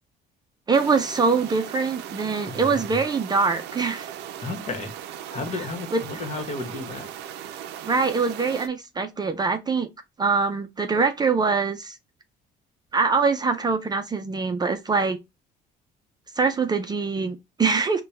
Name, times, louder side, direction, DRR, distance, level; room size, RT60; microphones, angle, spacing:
voice 1, 0.7-4.1 5.5-5.6 5.9-6.0 7.8-9.9 10.2-12.0 12.9-15.2 16.4-18.0, right 4 dB, 25° right, 0.5 m, -23 dB
sound 1, 0.7-8.7, right 10 dB, 85° right, 0.5 m, -38 dB
voice 2, 2.4-2.8 4.4-4.9 5.3-7.1, left 3 dB, 40° left, 1.3 m, -33 dB
4.3 x 2.3 x 3.2 m
cardioid pair, 110°, 17 cm